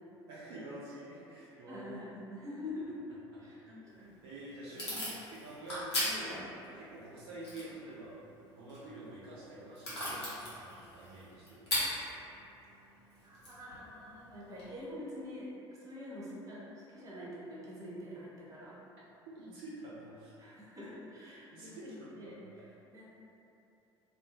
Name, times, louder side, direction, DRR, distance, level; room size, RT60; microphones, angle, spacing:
voice 1, 0.3-1.9 3.7-6.4 6.7-8.1 8.5-11.8 19.4-20.4 21.5-22.4, right 1 dB, 60° right, -8 dB, 0.5 m, -48 dB
voice 2, 1.7-2.9 3.4-3.6 13.2-15.5 15.8-18.8 20.4-22.7 22.9-23.0, left 1 dB, 25° right, -7 dB, 0.7 m, -45 dB
Packing tape duct tape / Tearing, 3.9-14.7, equal, 75° left, 0.8 m, -41 dB
2.3 x 2.3 x 2.7 m, 2.9 s
figure-of-eight pair, 65°, 14 cm